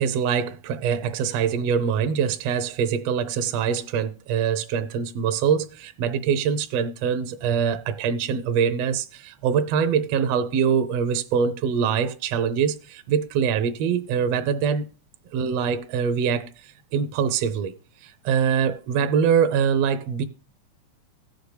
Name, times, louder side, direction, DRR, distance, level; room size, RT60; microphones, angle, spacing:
voice 1, 0.0-14.9 15.3-17.7 18.0-20.2, right 7 dB, 70° right, 1.6 m, -24 dB
16.5 x 6.6 x 3.2 m
omnidirectional pair, 3.5 m